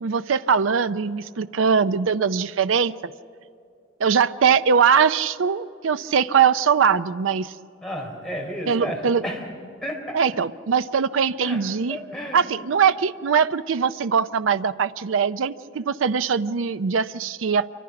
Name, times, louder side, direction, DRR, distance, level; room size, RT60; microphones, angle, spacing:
voice 1, 0.0-2.9 4.0-7.5 8.7-9.2 10.1-12.0 12.3-17.7, right 6 dB, 85° right, 13 dB, 0.5 m, -21 dB
voice 2, 7.8-9.4 9.8-10.2 11.4-11.6 11.9-12.5, equal, 5° left, -1 dB, 4.1 m, -32 dB
27.5 x 24.5 x 5.9 m, 2.4 s
head